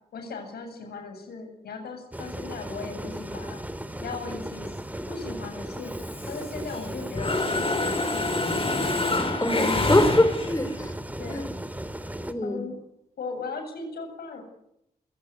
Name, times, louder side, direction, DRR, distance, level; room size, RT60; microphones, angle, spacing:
voice 1, 0.1-3.6 4.0-4.7 5.1-5.9 6.3-8.4 11.2-11.5 12.4-12.8 13.2-14.4, left 4 dB, 80° left, 7.6 m, -37 dB
sound 1, 2.1-12.3, right 1 dB, 10° right, 3.1 m, -36 dB
Mechanisms, 5.9-6.9 7.2-10.7, left 2 dB, 35° left, 7.0 m, -27 dB
voice 2, 9.4-10.9 11.3-11.4 12.3-12.6, left 1 dB, 20° left, 5.6 m, -23 dB
28.5 x 17.5 x 9.6 m
supercardioid pair, 50°, 16 cm